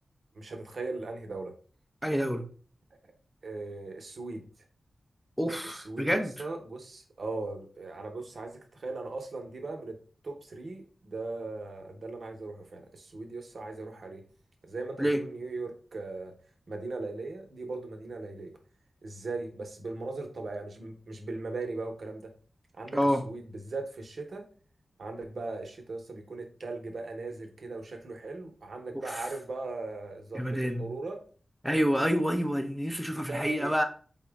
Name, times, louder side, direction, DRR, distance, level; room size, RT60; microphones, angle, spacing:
voice 1, 0.3-1.5 3.4-4.5 5.8-10.0 10.2-14.2 14.7-16.3 16.7-18.6 19.0-22.3 22.7-24.5 25.0-31.2 33.1-33.7, right 3 dB, 60° right, 0.7 m, -39 dB
voice 2, 2.0-2.5 5.4-6.3 15.0-15.2 22.9-23.2 29.1-29.3 30.3-30.9 31.6-33.8, equal, ahead, 0.4 m, -28 dB
4.1 x 2.1 x 3.4 m
wide cardioid pair, 115°, 0 cm